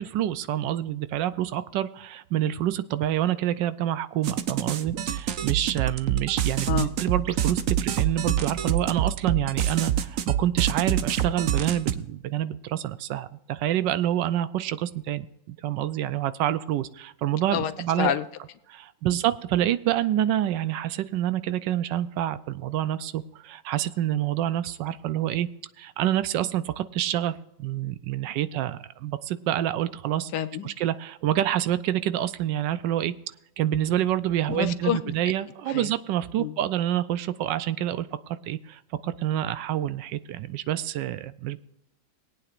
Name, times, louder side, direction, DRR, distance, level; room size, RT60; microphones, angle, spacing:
voice 1, 0.0-18.1 18.7-25.5 25.8-30.3 30.6-33.1 33.6-38.1 38.5-41.6, right 12 dB, 80° right, 14 dB, 1.3 m, -27 dB
sound 1, 4.2-11.9, right 10 dB, 60° right, 0.9 m, -26 dB
voice 2, 30.3-30.7 34.5-35.0 35.7-35.9 36.4-36.6, left 10 dB, 75° left, 11 dB, 1.2 m, -27 dB
21.5 x 8.8 x 2.5 m, 0.82 s
omnidirectional pair, 1.9 m